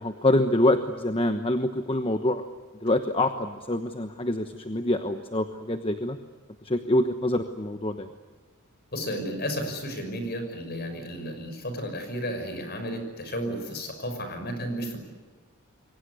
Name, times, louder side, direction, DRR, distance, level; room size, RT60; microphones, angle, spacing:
voice 1, 0.0-2.4 2.8-6.2 6.6-8.1, left 1 dB, 25° left, 8 dB, 1.1 m, -25 dB
voice 2, 8.9-15.0, equal, 45° left, 7 dB, 5.9 m, -33 dB
28.0 x 23.5 x 8.3 m, 1.4 s
head